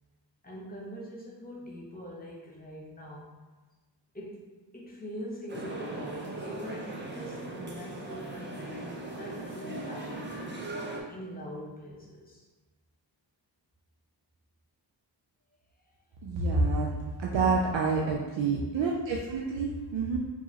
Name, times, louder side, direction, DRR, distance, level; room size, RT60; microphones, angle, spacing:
voice 1, 0.4-3.3 4.1-4.5 4.7-10.8 11.1-12.4 16.6-16.7 17.3-17.6, equal, 20° left, -4 dB, 0.9 m, -43 dB
sound 1, 5.5-11.0, right 2 dB, 25° right, 0.6 m, -39 dB
voice 2, 16.2-16.9 17.2-20.2, right 4 dB, 80° right, -2 dB, 0.5 m, -28 dB
4.7 x 2.6 x 2.8 m, 1.2 s
wide cardioid pair, 100°, 44 cm